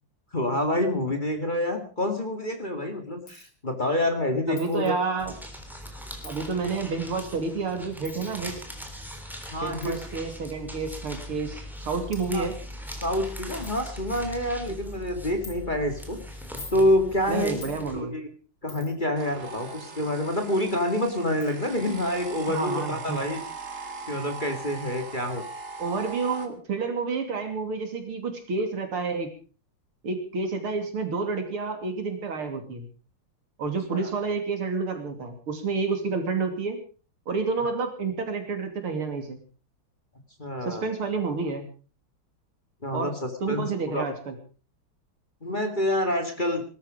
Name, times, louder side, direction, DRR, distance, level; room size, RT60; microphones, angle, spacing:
voice 1, 0.3-4.9 9.5-10.0 12.3-12.5 13.0-16.2 16.7-17.6 17.9-18.3 18.6-23.4 23.7-23.8 24.1-25.4 33.9-34.1 40.4-40.9 42.8-43.7 43.9-44.1 45.4-46.6, left 1 dB, 20° left, 6 dB, 2.1 m, -27 dB
Coin (dropping), 3.3-3.5 4.6-4.9 6.2-6.5 8.0-8.3 9.8-10.0 11.0-11.1 11.8-11.9 12.1-12.3 12.9-13.0 13.3-13.4 13.6-13.8 14.2-14.5 15.4-15.6 16.4-16.9 17.6-17.8 18.7-19.0 20.7-20.8 21.4-21.5, left 3 dB, 40° left, 3.2 m, -45 dB
voice 2, 4.5-5.4 6.2-8.5 9.6-12.6 17.3-18.2 22.5-23.2 25.8-29.3 30.0-32.9 33.6-36.8 37.3-39.4 40.6-41.7 42.9-43.1 43.4-44.4, right 4 dB, 80° right, 6 dB, 3.7 m, -29 dB
sound 1, 5.2-18.0, equal, ahead, 3.3 m, -40 dB
sound 2, 19.2-26.5, right 4 dB, 40° right, 2.2 m, -40 dB
19.5 x 13.0 x 5.1 m, 0.38 s
omnidirectional pair, 2.4 m